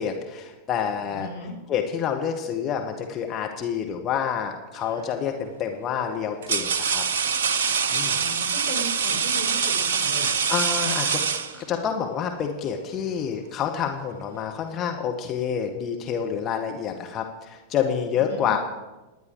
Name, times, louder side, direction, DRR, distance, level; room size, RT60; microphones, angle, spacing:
voice 1, 0.0-1.3 1.7-7.0 7.9-8.2 10.5-11.2 11.5-18.6, left 8 dB, 30° left, 3 dB, 1.7 m, -28 dB
voice 2, 1.0-1.5 8.1-10.3 18.1-18.5, equal, 85° left, -3 dB, 5.2 m, -37 dB
sound 1, 4.8-5.2 6.0-11.9, right 6 dB, 60° right, 0.8 m, -25 dB
27.5 x 10.5 x 4.9 m, 1.1 s
figure-of-eight pair, 90°, 0 cm